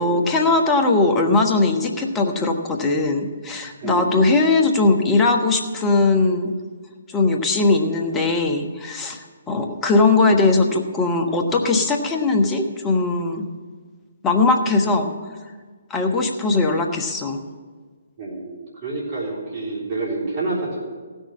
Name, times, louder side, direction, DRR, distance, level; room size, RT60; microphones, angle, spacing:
voice 1, 0.0-6.5 7.1-13.4 14.2-15.1 15.9-17.4, left 3 dB, 15° left, 3 dB, 1.2 m, -19 dB
voice 2, 3.8-4.2 18.2-20.8, right 3 dB, 40° right, -5 dB, 3.5 m, -28 dB
15.5 x 6.5 x 7.3 m, 1.5 s
figure-of-eight pair, 135°, 0 cm